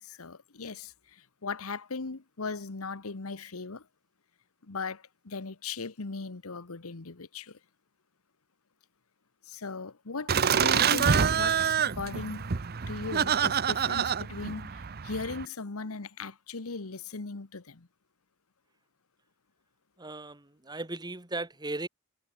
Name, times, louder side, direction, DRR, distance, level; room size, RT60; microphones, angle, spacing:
voice 1, 0.0-3.9 4.6-7.6 9.4-12.5 12.9-17.9, left 4 dB, 80° left, 1.2 m, -38 dB
Laughter, 10.3-15.4, right 7 dB, 45° right, 0.7 m, -27 dB
voice 2, 20.0-21.9, right 2 dB, 20° right, 1.9 m, -37 dB
head